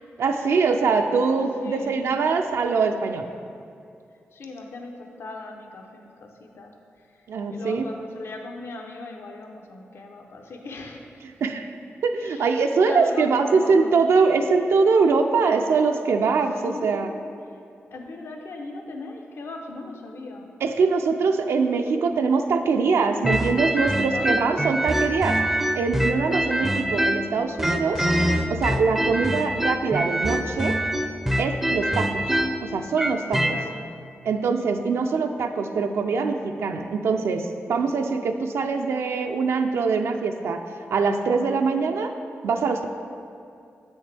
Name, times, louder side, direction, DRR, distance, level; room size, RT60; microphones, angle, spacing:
voice 1, 0.2-3.3 7.3-7.8 11.4-11.7 12.0-17.1 20.6-25.4 25.8-28.1 28.5-30.8 31.4-32.2 32.6-33.6 34.2-40.6 40.9-42.1 42.4-42.9, right 4 dB, 85° right, 5 dB, 0.4 m, -23 dB
voice 2, 1.6-2.0 4.3-7.2 7.5-11.2 12.2-14.0 16.6-17.6 17.9-20.5 24.1-24.9 31.8-32.0 33.5-33.8, left 3 dB, 70° left, 2 dB, 0.7 m, -39 dB
sound 1, 23.2-27.3 27.6-33.6, equal, 5° right, 0.4 m, -24 dB
8.0 x 6.2 x 3.3 m, 2.5 s
cardioid pair, 90°, 4 cm